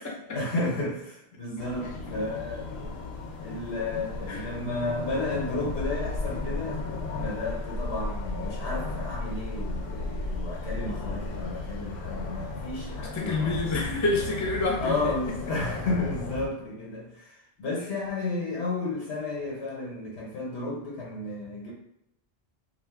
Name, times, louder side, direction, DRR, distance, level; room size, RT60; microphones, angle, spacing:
voice 1, 0.3-2.7 3.4-6.8 7.1-13.7 14.8-21.7, left 2 dB, 90° left, -4 dB, 1.0 m, -32 dB
sound 1, 1.6-16.5, left 3 dB, 70° left, 0.7 m, -35 dB
voice 2, 13.1-15.1, left 2 dB, 25° left, -1 dB, 0.4 m, -28 dB
2.5 x 2.3 x 3.4 m, 0.82 s
omnidirectional pair, 1.1 m